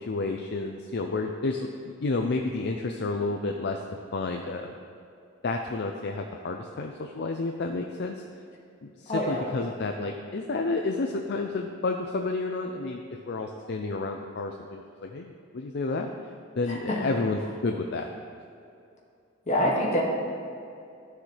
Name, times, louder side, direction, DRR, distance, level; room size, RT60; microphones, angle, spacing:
voice 1, 0.1-4.8 5.4-8.2 8.8-16.1 16.6-18.1, left 3 dB, 55° left, 3 dB, 0.5 m, -30 dB
voice 2, 9.1-9.5 16.7-17.0 19.5-20.0, left 1 dB, 35° left, -4 dB, 2.0 m, -26 dB
14.0 x 6.5 x 3.3 m, 2.5 s
head